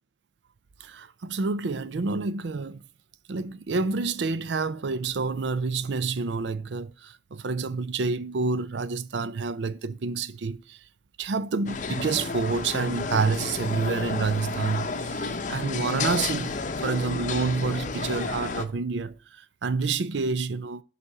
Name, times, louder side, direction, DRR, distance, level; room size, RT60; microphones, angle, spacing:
voice 1, 0.8-2.8 3.3-10.8 11.2-20.8, right 4 dB, 75° right, 0.5 m, -28 dB
sound 1, 11.7-18.6, left 4 dB, 45° left, 0.8 m, -31 dB
11.0 x 4.2 x 4.7 m
head